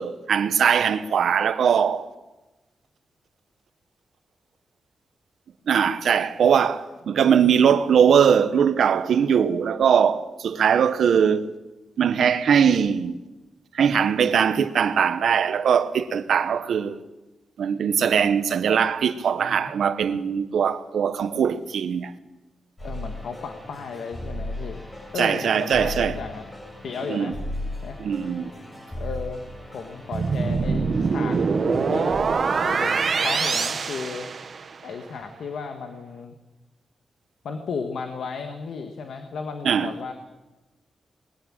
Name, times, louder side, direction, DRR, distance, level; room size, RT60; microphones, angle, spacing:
voice 1, 0.0-2.1 5.7-11.4 12.0-13.1 13.7-17.0 17.6-22.1 25.2-26.1 27.1-27.3 28.0-28.5 39.6-39.9, right 7 dB, 85° right, 1.1 m, -21 dB
voice 2, 19.3-19.7 22.8-24.8 25.1-26.5 26.8-27.4 27.8-28.0 29.0-29.4 29.7-32.2 32.6-34.3 34.8-36.3 37.4-40.1, left 5 dB, 85° left, 1.7 m, -34 dB
sound 1, 22.8-32.2, left 1 dB, 20° left, 7.6 m, -36 dB
sound 2, 30.1-34.9, right 5 dB, 50° right, 1.1 m, -24 dB
21.0 x 15.0 x 8.9 m
wide cardioid pair, 120°, 0 cm